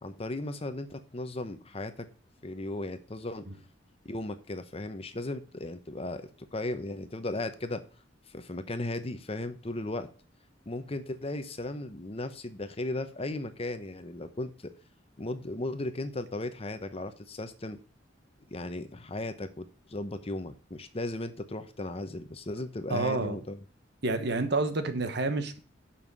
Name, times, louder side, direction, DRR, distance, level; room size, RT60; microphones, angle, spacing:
voice 1, 0.0-2.1 2.4-3.4 4.0-7.8 8.3-10.1 10.7-14.7 15.2-17.8 18.5-23.6, left 2 dB, 30° left, 10 dB, 0.9 m, -36 dB
voice 2, 22.9-23.4 24.0-25.6, right 3 dB, 60° right, 9 dB, 1.3 m, -29 dB
7.3 x 5.8 x 6.9 m, 0.38 s
head